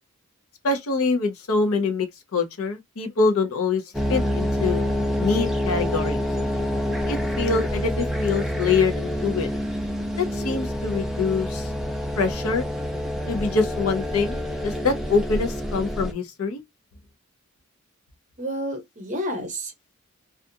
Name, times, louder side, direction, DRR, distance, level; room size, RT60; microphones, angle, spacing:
voice 1, 0.6-2.1 2.3-3.8 4.1-4.9 5.2-6.2 7.1-9.5 10.2-11.7 12.2-12.7 13.3-16.6, left 4 dB, 80° left, 0.7 m, -24 dB
sound 1, 3.9-16.1, equal, ahead, 0.4 m, -27 dB
voice 2, 18.4-19.9, equal, 35° right, 0.8 m, -30 dB
2.5 x 2.3 x 2.6 m
head